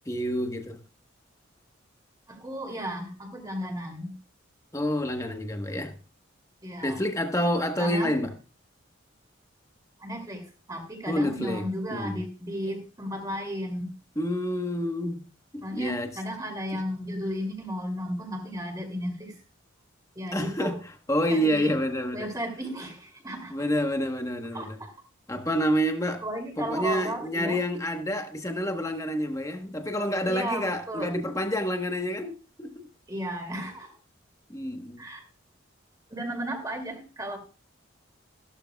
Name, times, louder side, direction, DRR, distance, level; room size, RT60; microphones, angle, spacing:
voice 1, 0.1-0.8 4.7-6.0 6.8-8.3 11.1-11.6 11.9-12.2 14.2-15.3 15.5-16.1 16.7-16.8 20.3-20.8 21.1-22.3 23.5-24.8 25.3-26.2 26.6-32.9 34.5-35.0, equal, 15° left, 1.2 m, -28 dB
voice 2, 2.3-4.1 6.6-7.0 7.8-8.1 10.0-13.9 15.6-19.4 20.2-20.7 21.3-21.7 22.1-23.6 24.5-24.9 26.2-27.6 30.2-31.1 33.1-34.0 35.0-35.2 36.1-37.4, equal, 15° right, 2.4 m, -34 dB
15.0 x 12.0 x 2.3 m
head